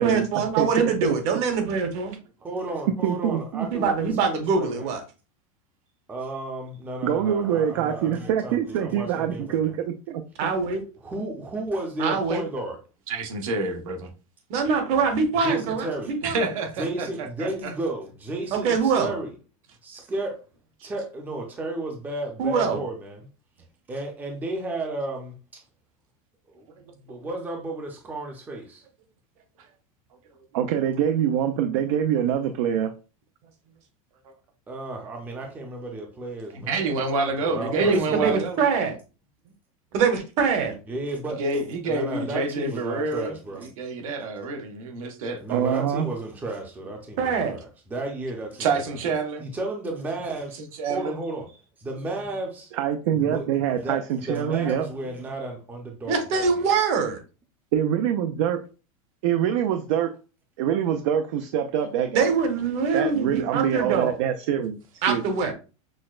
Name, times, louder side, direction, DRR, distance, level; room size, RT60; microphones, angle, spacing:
voice 1, 0.0-2.1 3.7-5.0 10.4-10.8 12.0-12.4 14.5-16.5 18.5-19.1 22.4-22.8 37.8-38.9 39.9-40.7 47.2-47.5 56.0-57.2 62.1-64.2 65.0-65.5, right 5 dB, 40° right, 0.9 m, -24 dB
voice 2, 0.6-1.1 3.0-3.7 7.0-10.2 30.5-32.9 45.5-46.1 52.7-54.8 57.7-58.6 59.2-60.1 60.6-62.3 62.9-64.8 65.1-65.3, right 9 dB, 60° right, 0.4 m, -24 dB
voice 3, 2.4-4.9 6.1-9.7 11.0-12.8 15.4-16.1 16.8-19.3 19.8-20.4 20.8-23.3 23.9-25.6 26.5-28.8 34.7-36.9 37.4-38.4 40.9-43.7 45.4-49.0 49.4-50.6 50.9-51.5 51.8-52.7 53.1-56.7, right 2 dB, 10° right, 0.5 m, -33 dB
voice 4, 13.1-14.1 16.2-17.7 20.8-20.9 27.1-27.2 36.5-38.6 41.4-45.4 48.6-49.4 50.7-51.2, right 3 dB, 85° right, 1.0 m, -28 dB
6.1 x 2.1 x 2.4 m
supercardioid pair, 160°, 17 cm